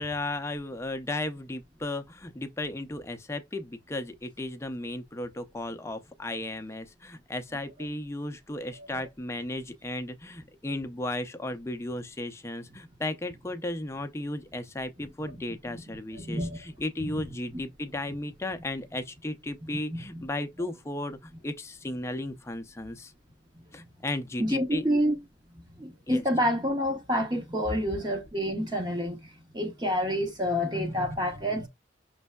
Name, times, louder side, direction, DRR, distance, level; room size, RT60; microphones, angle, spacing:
voice 1, 0.0-23.1 23.7-24.8 26.1-26.2, left 1 dB, 15° left, 0.5 m, -35 dB
voice 2, 16.2-16.6 17.0-17.1 19.9-20.0 24.4-25.2 25.8-31.7, equal, 20° right, 0.8 m, -28 dB
5.4 x 3.2 x 2.2 m
head